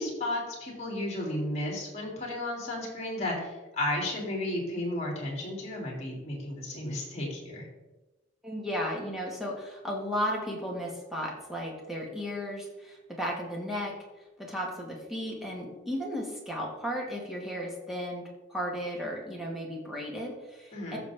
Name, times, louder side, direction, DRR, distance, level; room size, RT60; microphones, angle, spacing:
voice 1, 0.0-7.6 20.7-21.0, left 1 dB, 35° left, -2 dB, 3.3 m, -33 dB
voice 2, 8.4-14.0 14.4-21.0, equal, ahead, -2 dB, 2.0 m, -35 dB
14.0 x 6.6 x 3.7 m, 1.1 s
head